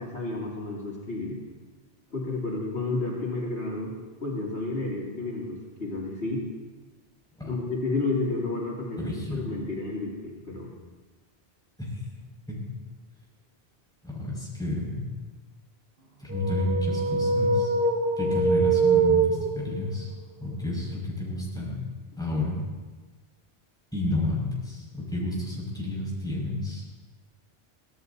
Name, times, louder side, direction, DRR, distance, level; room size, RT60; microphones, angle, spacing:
voice 1, 0.0-1.4 2.1-3.9 4.2-6.4 7.4-9.0 9.3-10.7, left 2 dB, 85° left, -4 dB, 3.7 m, -31 dB
voice 2, 9.0-9.4 11.8-12.6 14.0-15.1 16.2-17.7 18.2-20.1 20.4-21.8 22.2-22.6 23.9-26.8, left 1 dB, 5° left, -5 dB, 5.9 m, -30 dB
sound 1, 16.3-19.9, right 4 dB, 60° right, 1.5 m, -24 dB
24.5 x 17.0 x 2.8 m, 1.3 s
omnidirectional pair, 1.1 m